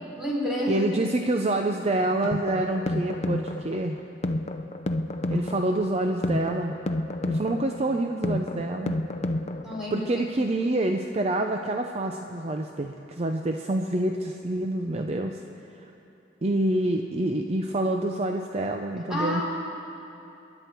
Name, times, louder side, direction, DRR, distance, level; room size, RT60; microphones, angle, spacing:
voice 1, 0.1-0.9 5.3-5.5 7.4-8.0 9.6-10.2 19.1-19.4, left 1 dB, 5° right, -6 dB, 4.3 m, -31 dB
voice 2, 0.7-4.0 5.3-6.8 7.3-9.0 9.9-15.4 16.4-19.4, right 1 dB, 35° right, 4 dB, 0.6 m, -27 dB
sound 1, 2.0-10.0, left 1 dB, 40° left, 0.6 m, -30 dB
27.5 x 11.0 x 4.6 m, 2.8 s
head